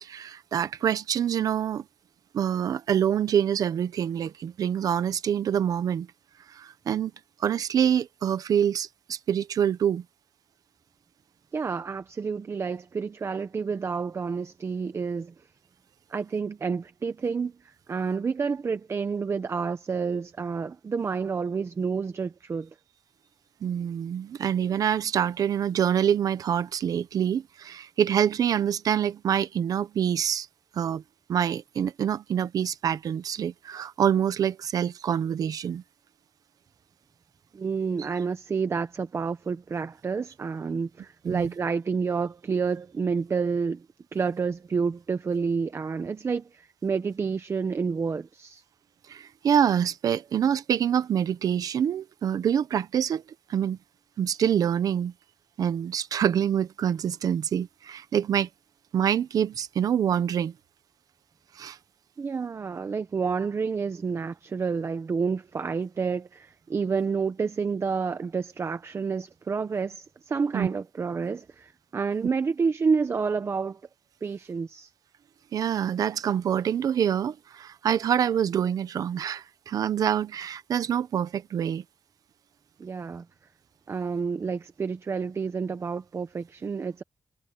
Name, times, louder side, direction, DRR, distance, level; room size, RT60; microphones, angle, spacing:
voice 1, 0.0-1.8 2.3-6.1 6.5-7.1 7.4-10.0 23.6-30.5 30.7-31.0 31.3-35.8 41.2-41.5 49.1-53.2 53.5-53.8 54.2-55.1 55.6-58.5 58.9-60.5 61.6-61.8 70.5-70.7 75.5-81.8, right 9 dB, 90° right, 0.9 m, -26 dB
voice 2, 11.5-15.3 16.1-17.5 17.9-22.7 37.5-43.8 44.1-48.6 62.2-73.8 74.2-74.9 82.8-83.2 83.9-87.0, right 5 dB, 45° right, 1.1 m, -29 dB
cardioid pair, 95°, 6 cm